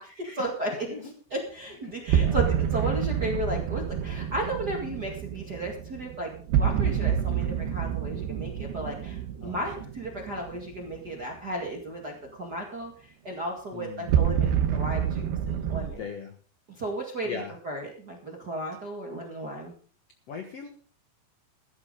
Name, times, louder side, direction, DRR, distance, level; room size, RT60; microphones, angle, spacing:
voice 1, 0.3-0.9 1.3-16.0 16.7-19.8, right 1 dB, 40° right, 0 dB, 1.4 m, -34 dB
voice 2, 1.8-2.4 7.3-7.8 9.4-9.7 13.7-14.4 15.9-16.4 17.2-17.6 20.3-20.7, left 5 dB, 75° left, 5 dB, 1.4 m, -40 dB
sound 1, 2.1-11.1 14.1-15.9, right 9 dB, 75° right, 3.2 m, -28 dB
15.5 x 13.0 x 3.8 m, 0.42 s
omnidirectional pair, 5.1 m